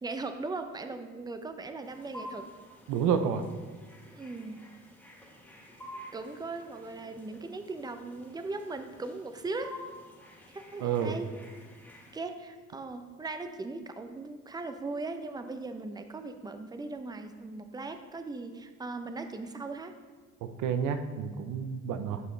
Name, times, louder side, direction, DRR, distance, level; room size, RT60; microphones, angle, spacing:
voice 1, 0.0-2.5 4.1-4.6 6.1-9.7 10.5-11.3 12.1-20.0, right 3 dB, 15° right, 8 dB, 0.6 m, -39 dB
sound 1, 1.8-12.1, left 1 dB, 5° left, 2.0 m, -50 dB
voice 2, 2.9-3.4 10.8-11.2 20.4-22.2, right 7 dB, 90° right, 9 dB, 0.6 m, -29 dB
12.0 x 5.5 x 3.2 m, 1.4 s
cardioid pair, 90°, 30 cm